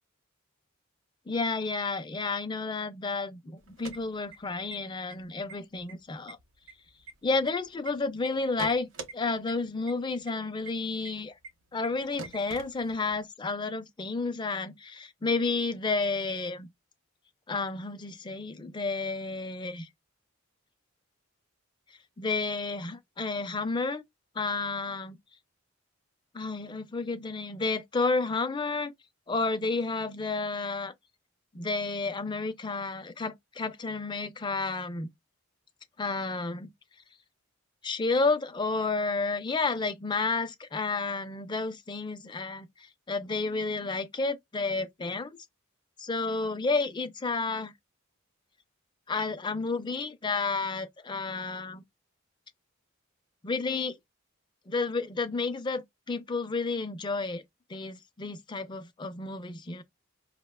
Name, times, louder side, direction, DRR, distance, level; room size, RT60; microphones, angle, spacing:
voice 1, 1.3-6.4 7.2-11.3 11.7-16.7 17.5-19.9 22.2-24.0 24.4-25.2 26.3-28.9 29.3-30.9 31.5-35.1 36.0-36.7 37.8-45.4 46.0-47.7 49.1-51.8 53.4-54.0 54.7-57.4 57.7-59.8, left 3 dB, 20° left, 0.4 m, -31 dB
sound 1, 3.6-4.7 5.1-5.2 5.5-5.9 6.3-7.9 8.2-9.1 9.5-9.6 9.9-10.0 10.3-10.4 10.7-10.8 11.0-11.1 11.4-11.5 11.8-11.9 12.2-13.2, right 4 dB, 65° right, 0.8 m, -43 dB
5.3 x 2.1 x 2.2 m
head